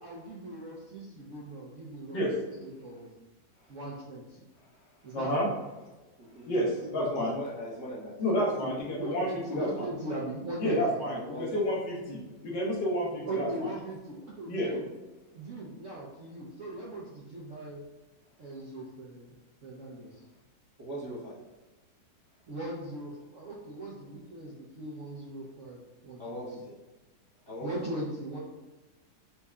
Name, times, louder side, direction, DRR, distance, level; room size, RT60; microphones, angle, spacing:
voice 1, 0.0-3.1 3.7-4.4 5.0-5.5 8.6-11.0 13.2-14.9 15.3-17.8 18.4-19.3 19.6-20.2 22.5-26.4 27.6-28.4, right 1 dB, 60° right, -5 dB, 0.8 m, -39 dB
voice 2, 5.1-5.5 6.5-7.4 8.2-9.3 9.6-9.7 10.6-13.5 14.5-14.7, equal, 85° left, -2 dB, 1.7 m, -29 dB
voice 3, 6.2-6.5 6.9-8.1 11.3-11.6 20.8-21.4 26.2-26.8 27.5-27.7, equal, 25° right, -8 dB, 0.6 m, -39 dB
4.5 x 2.4 x 4.1 m, 1.1 s
omnidirectional pair, 1.9 m